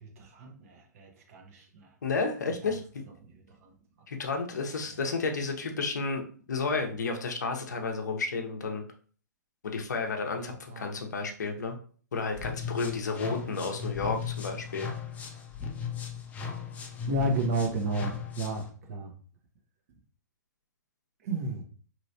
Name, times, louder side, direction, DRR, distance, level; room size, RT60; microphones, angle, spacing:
voice 1, 0.0-1.9 3.2-3.3 3.6-3.7 10.4-10.9 17.1-19.1 21.2-21.6, right 2 dB, 50° right, 2 dB, 0.9 m, -33 dB
voice 2, 2.0-3.0 4.1-6.2 6.5-8.8 9.6-11.8 12.1-14.9, left 4 dB, 70° left, 4 dB, 0.7 m, -31 dB
sound 1, 12.3-18.7, left 7 dB, 15° left, 0.5 m, -37 dB
3.0 x 2.9 x 2.7 m, 0.43 s
figure-of-eight pair, 120°, 10 cm